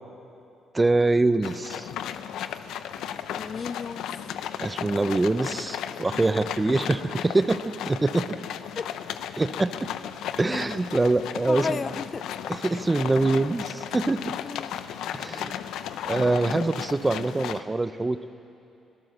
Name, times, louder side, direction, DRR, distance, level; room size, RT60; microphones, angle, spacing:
voice 1, 0.7-1.9 4.6-8.4 9.4-9.9 10.4-11.8 12.6-14.3 15.1-15.6 16.1-18.3, right 2 dB, 20° right, 13 dB, 0.7 m, -24 dB
sound 1, 1.4-17.6, left 10 dB, 85° left, 0.7 m, -35 dB
voice 2, 3.3-4.2 8.7-8.9 11.5-12.2 14.4-14.7, left 5 dB, 45° left, 14 dB, 0.6 m, -33 dB
25.0 x 17.5 x 6.7 m, 2.8 s
cardioid pair, 90°, 0 cm